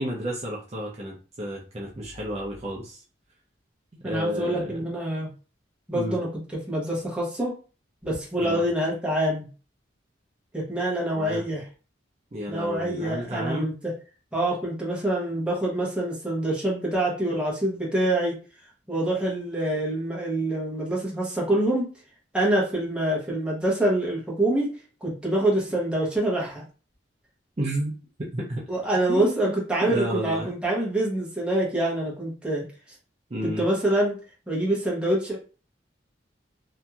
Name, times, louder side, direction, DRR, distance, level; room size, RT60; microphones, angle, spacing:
voice 1, 0.0-3.0 4.0-4.7 5.9-6.2 8.4-8.6 11.1-11.4 12.3-13.7 27.6-27.9 28.3-28.7 29.1-29.5 29.8-30.5 33.3-33.7, right 1 dB, 35° right, -3 dB, 0.6 m, -31 dB
voice 2, 4.0-5.3 5.9-6.3 6.7-7.5 8.0-9.5 10.5-11.6 12.5-13.9 14.3-18.4 18.9-21.9 22.3-24.7 25.0-26.6 28.7-32.6 33.4-34.1 34.5-35.4, right 1 dB, 5° right, -5 dB, 0.9 m, -25 dB
2.8 x 2.6 x 2.3 m, 0.37 s
head